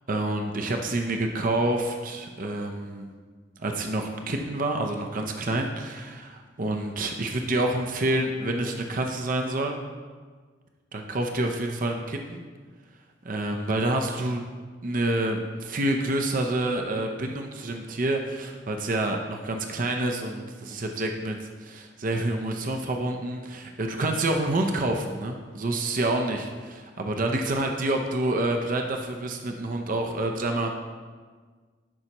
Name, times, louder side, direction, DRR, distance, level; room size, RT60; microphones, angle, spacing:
voice 1, 0.1-3.1 3.6-9.8 10.9-12.4 13.2-14.5 14.8-30.7, right 2 dB, 45° right, 3 dB, 0.6 m, -28 dB
12.0 x 5.5 x 3.0 m, 1.5 s
head